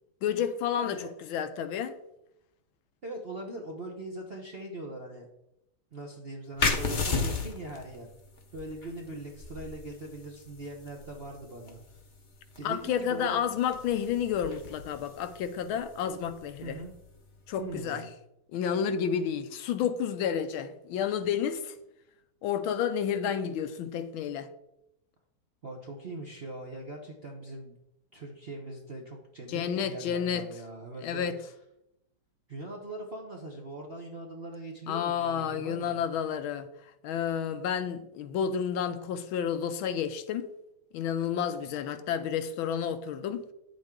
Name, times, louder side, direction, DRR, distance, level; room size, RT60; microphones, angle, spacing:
voice 1, 0.2-2.0 12.6-16.8 17.5-18.1 18.5-21.7 22.4-24.5 29.5-30.5 31.0-31.4 34.9-36.7 37.0-40.5 40.9-43.4, left 8 dB, 75° left, 1.4 m, -30 dB
voice 2, 0.8-1.1 3.0-5.2 5.9-8.1 8.5-11.8 12.6-13.5 16.6-16.9 17.6-18.1 25.6-27.8 28.1-31.5 32.5-35.9, right 2 dB, 45° right, 0.8 m, -41 dB
sound 1, 6.6-17.9, left 4 dB, 50° left, 0.5 m, -36 dB
8.9 x 7.6 x 3.7 m
omnidirectional pair, 2.3 m